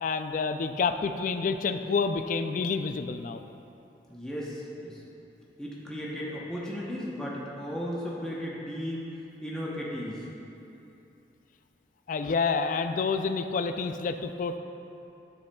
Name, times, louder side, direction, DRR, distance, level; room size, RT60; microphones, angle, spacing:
voice 1, 0.0-3.4 12.1-14.6, left 4 dB, 45° left, 8 dB, 0.3 m, -28 dB
voice 2, 4.1-5.0 5.6-9.1 9.4-10.2, equal, 5° left, -6 dB, 0.8 m, -35 dB
9.8 x 7.9 x 2.3 m, 2.9 s
head